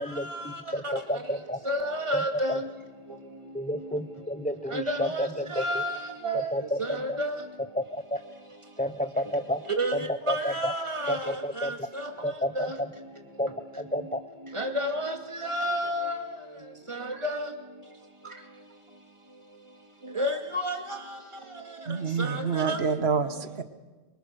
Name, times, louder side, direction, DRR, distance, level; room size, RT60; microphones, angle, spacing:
voice 1, 0.0-1.6 2.1-2.6 3.5-5.8 6.3-7.2 7.7-8.2 8.8-9.6 9.9-10.7 11.1-11.8 12.2-12.9 13.4-14.2, equal, 10° left, 10 dB, 1.0 m, -31 dB
voice 2, 1.7-2.6 4.7-5.3 5.6-6.0 6.2-6.5 7.2-7.3 9.8-9.9 10.3-11.2 14.6-15.1 15.4-16.1 17.2-17.4 20.2-20.7 22.6-22.8, equal, 30° right, 3 dB, 2.4 m, -29 dB
voice 3, 21.9-23.6, right 5 dB, 85° right, 10 dB, 1.5 m, -28 dB
25.0 x 24.0 x 6.6 m, 1.3 s
omnidirectional pair, 1.0 m